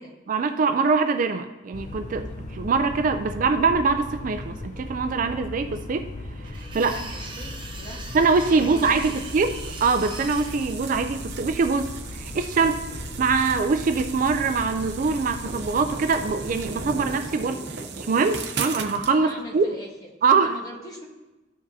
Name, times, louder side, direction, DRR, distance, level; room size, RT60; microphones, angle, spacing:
voice 1, 0.3-6.1 6.7-7.0 8.1-9.5 9.8-12.9 13.2-17.6 18.0-19.7 20.2-20.6, right 4 dB, 45° right, 8 dB, 0.3 m, -23 dB
sound 1, 1.7-17.1, left 2 dB, 40° left, 0.5 m, -37 dB
sound 2, 6.4-10.7, right 3 dB, 25° right, 0.9 m, -41 dB
voice 2, 6.8-8.0 8.5-9.3 19.2-20.1 20.4-21.1, equal, 20° left, -1 dB, 1.3 m, -41 dB
High Speed Wall Crash OS, 8.8-19.1, right 5 dB, 65° right, 0.7 m, -37 dB
13.5 x 5.1 x 2.7 m, 1.1 s
head